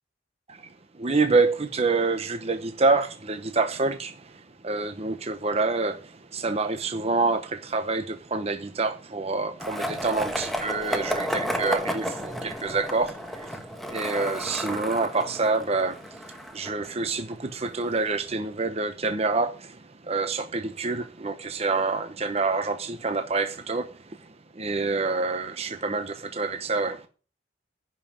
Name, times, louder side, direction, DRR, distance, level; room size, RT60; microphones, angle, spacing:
voice 1, 0.9-24.3 24.5-27.1, right 3 dB, 35° right, 0.8 m, -27 dB
Skateboard, 9.6-17.5, equal, ahead, 1.3 m, -32 dB
10.5 x 5.7 x 8.6 m
head